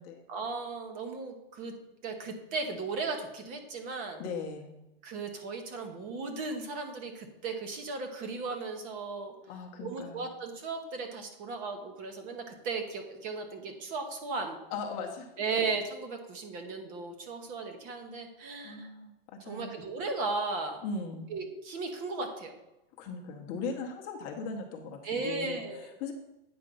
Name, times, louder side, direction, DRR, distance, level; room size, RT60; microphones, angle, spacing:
voice 1, 0.3-1.7 2.0-4.2 5.0-9.3 9.8-14.6 15.4-18.9 19.4-20.8 21.3-22.5 25.0-25.9, right 4 dB, 30° right, 5 dB, 1.0 m, -36 dB
voice 2, 4.2-4.7 9.5-10.3 14.7-15.3 18.6-19.7 20.8-21.3 22.9-25.6 26.0-26.1, left 4 dB, 30° left, 2 dB, 0.9 m, -38 dB
8.8 x 4.5 x 5.4 m, 0.92 s
supercardioid pair, 165°, 29 cm